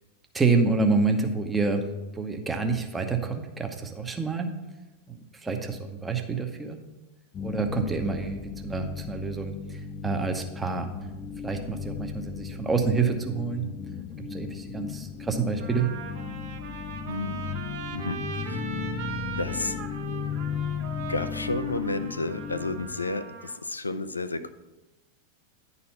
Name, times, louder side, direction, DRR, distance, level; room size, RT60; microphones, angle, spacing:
voice 1, 0.3-1.8 2.1-4.5 5.1-6.8 7.4-10.9 11.4-13.6 14.3-15.9, right 4 dB, 10° right, 5 dB, 0.9 m, -27 dB
sound 1, 7.3-22.9, left 6 dB, 30° left, 0.6 m, -36 dB
Trumpet, 14.9-15.0 15.6-23.5, right 6 dB, 50° right, 1.2 m, -40 dB
voice 2, 17.1-17.5 17.9-18.6 19.4-19.8 21.1-24.5, left 2 dB, 80° left, 12 dB, 0.4 m, -31 dB
10.5 x 4.2 x 5.6 m, 1.0 s
figure-of-eight pair, 90°, 0 cm